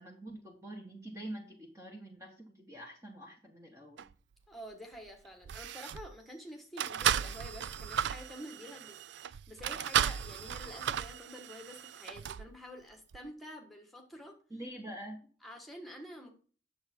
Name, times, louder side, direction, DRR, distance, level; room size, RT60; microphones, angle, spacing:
voice 1, 0.0-4.0 14.5-15.3, right 1 dB, 15° right, 0 dB, 1.3 m, -46 dB
sound 1, 4.0-4.1 5.0-5.1 5.4-6.1 6.8-12.5 13.1-13.2, right 9 dB, 60° right, 0.3 m, -35 dB
voice 2, 4.5-14.4 15.4-16.3, equal, ahead, 2 dB, 1.5 m, -48 dB
9.4 x 7.0 x 4.5 m, 0.42 s
head